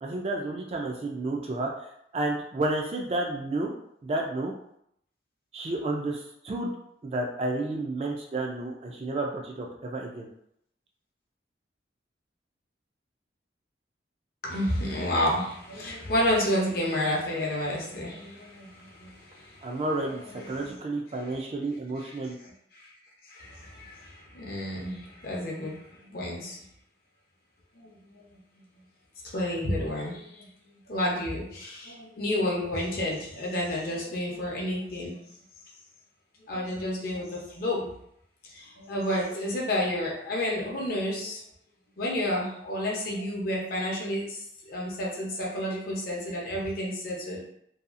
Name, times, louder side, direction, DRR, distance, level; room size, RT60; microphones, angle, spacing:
voice 1, 0.0-1.7 2.1-3.7 4.0-4.5 5.5-6.7 7.0-10.3 19.6-22.4, right 2 dB, 35° right, 0 dB, 0.3 m, -31 dB
voice 2, 14.4-19.7 20.4-20.8 22.0-22.1 22.7-22.9 23.2-26.6 27.8-28.2 29.3-30.5 30.9-35.2 36.5-37.9 38.4-41.4 42.0-47.4, left 1 dB, 55° left, -3 dB, 0.6 m, -30 dB
2.7 x 2.3 x 2.4 m, 0.73 s
head